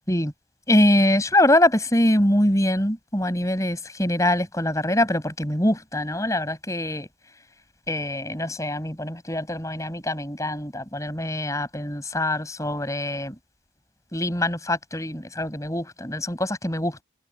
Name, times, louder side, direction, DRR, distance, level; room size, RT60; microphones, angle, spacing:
voice 1, 0.7-7.1 7.9-13.3 14.1-17.0, left 1 dB, 20° left, 6.9 m, -23 dB
open air
head